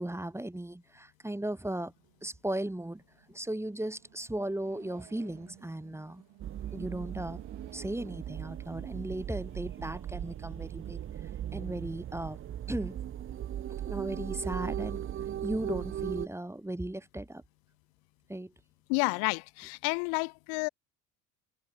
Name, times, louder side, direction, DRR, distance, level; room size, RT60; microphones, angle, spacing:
voice 1, 0.0-1.9 2.2-3.0 3.3-6.2 6.7-7.4 7.7-11.0 11.5-12.4 12.7-13.0 13.9-15.0 15.4-17.4 18.3-18.5, right 1 dB, 5° right, 1.3 m, -36 dB
sound 1, 1.8-8.8, right 19 dB, 65° right, 7.9 m, -58 dB
sound 2, 6.4-16.3, right 10 dB, 30° right, 0.6 m, -38 dB
voice 2, 18.9-20.7, left 40 dB or more, 65° left, 0.7 m, -30 dB
hypercardioid pair, 55°, 45 cm